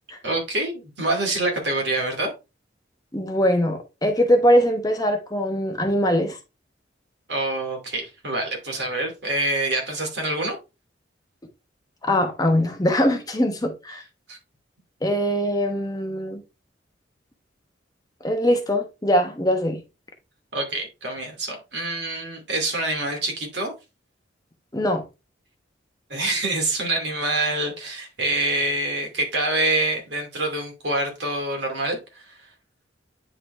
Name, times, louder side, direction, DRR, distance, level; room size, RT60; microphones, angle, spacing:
voice 1, 0.2-2.3 7.3-10.6 14.3-14.4 20.5-23.7 26.1-32.5, right 2 dB, 65° right, 2.5 m, -26 dB
voice 2, 3.1-6.4 12.0-14.0 15.0-16.4 18.2-19.8 24.7-25.0, equal, 20° left, 1.1 m, -22 dB
9.6 x 3.9 x 3.3 m
head